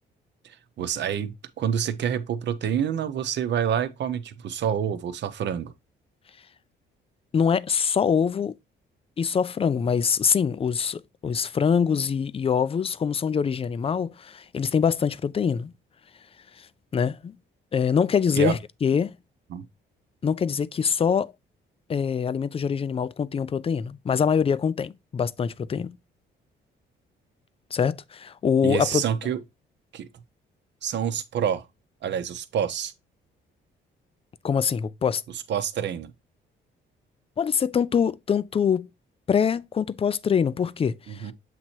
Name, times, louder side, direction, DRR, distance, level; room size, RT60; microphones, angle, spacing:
voice 1, 0.4-5.7 18.4-18.6 19.5-19.6 28.6-29.4 29.9-30.1 30.8-31.6 32.0-32.9 35.5-36.1 41.1-41.3, right 8 dB, 65° right, 0.8 m, -27 dB
voice 2, 7.3-8.5 9.2-15.7 16.6-16.7 16.9-17.3 17.7-19.1 20.2-21.3 21.9-26.0 27.7-29.0 34.4-35.2 37.4-38.9 39.3-41.3, left 7 dB, 30° left, 0.4 m, -24 dB
7.6 x 2.9 x 4.4 m
cardioid pair, 90°, 20 cm